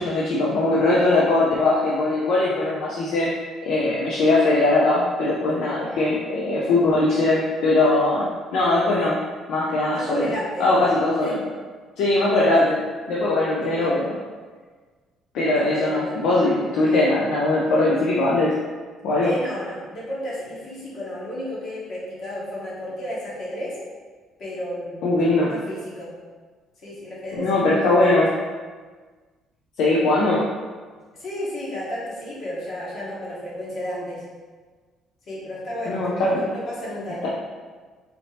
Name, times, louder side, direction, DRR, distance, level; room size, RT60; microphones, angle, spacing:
voice 1, 0.0-3.3 3.6-9.2 9.5-10.3 10.6-11.4 12.0-12.8 13.1-14.2 15.3-18.5 19.0-19.3 25.0-25.5 27.4-28.3 29.8-30.4 35.9-36.4 37.2-37.3, left 2 dB, 75° left, -5 dB, 0.5 m, -20 dB
voice 2, 9.9-10.7 11.2-11.4 13.6-14.0 15.5-16.3 19.2-23.7 24.4-26.1 26.8-28.2 31.1-34.2 35.3-37.3, equal, 55° left, -7 dB, 1.5 m, -33 dB
4.2 x 2.8 x 3.3 m, 1.5 s
cardioid pair, 120°, 0 cm